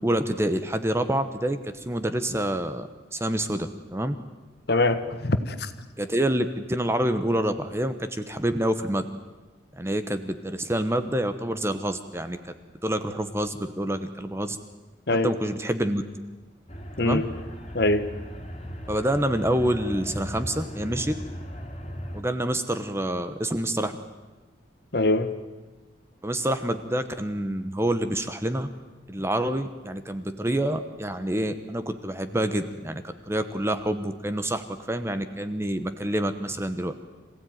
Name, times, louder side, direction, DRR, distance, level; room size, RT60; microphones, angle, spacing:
voice 1, 0.0-4.1 6.0-9.1 9.7-12.5 12.8-14.6 15.2-16.0 17.0-17.2 18.9-21.1 22.1-23.9 26.2-28.7 29.1-36.9, right 1 dB, 15° right, 9 dB, 1.0 m, -27 dB
voice 2, 4.7-5.7 15.1-15.3 17.0-17.3 17.7-18.1 24.9-25.3, left 2 dB, 55° left, 10 dB, 1.3 m, -23 dB
sound 1, 16.7-22.2, equal, 30° left, 2.9 m, -37 dB
26.0 x 16.0 x 9.3 m, 1.2 s
head